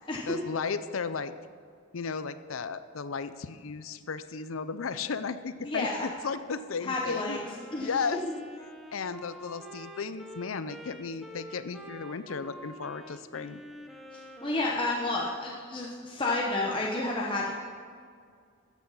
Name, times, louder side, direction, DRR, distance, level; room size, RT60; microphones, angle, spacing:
voice 1, 0.3-1.3 1.9-7.4 7.8-8.2 8.9-13.6, left 5 dB, 85° left, 13 dB, 0.6 m, -34 dB
voice 2, 5.6-6.1 6.8-7.4 7.7-8.3 14.1-17.5, left 2 dB, 25° left, -3 dB, 1.0 m, -31 dB
Wind instrument woodwind instrument, 7.0-15.5, equal, ahead, 1.0 m, -47 dB
13.5 x 8.3 x 5.6 m, 2.2 s
head